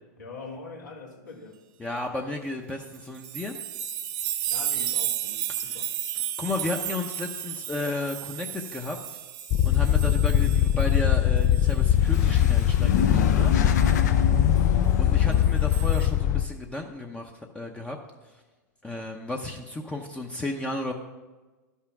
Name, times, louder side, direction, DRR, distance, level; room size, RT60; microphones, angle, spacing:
voice 1, 0.2-1.6 4.5-5.9 14.3-14.7, left 3 dB, 90° left, -2 dB, 1.9 m, -43 dB
voice 2, 1.8-3.6 5.7-5.8 6.1-9.0 9.6-13.6 15.0-18.0 18.8-20.9, left 2 dB, 10° left, 1 dB, 0.8 m, -33 dB
sound 1, 2.8-11.2 11.5-12.6 13.8-13.9 15.3-16.1, right 11 dB, 45° right, 0.9 m, -33 dB
sound 2, 9.5-16.4, left 11 dB, 30° left, 0.4 m, -21 dB
sound 3, 11.7-16.4, left 6 dB, 70° left, 0.9 m, -30 dB
12.0 x 5.6 x 6.0 m, 1.2 s
hypercardioid pair, 115°, 10 cm